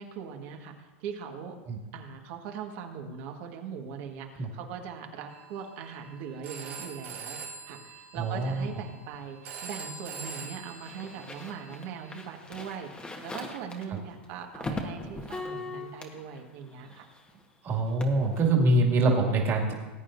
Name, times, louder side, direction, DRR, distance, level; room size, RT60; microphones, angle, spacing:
voice 1, 0.0-1.6 1.9-7.4 7.7-17.0, right 7 dB, 55° right, 3 dB, 1.7 m, -40 dB
Telephone, 5.3-12.2, right 5 dB, 75° right, 2.1 m, -44 dB
voice 2, 8.1-8.7 13.9-14.0 17.6-19.7, right 2 dB, 35° right, 0 dB, 2.4 m, -24 dB
sound 1, 10.1-17.4 17.7-18.5, left 2 dB, 15° left, 1.4 m, -40 dB
19.5 x 9.0 x 2.7 m, 1.2 s
hypercardioid pair, 120°, 7 cm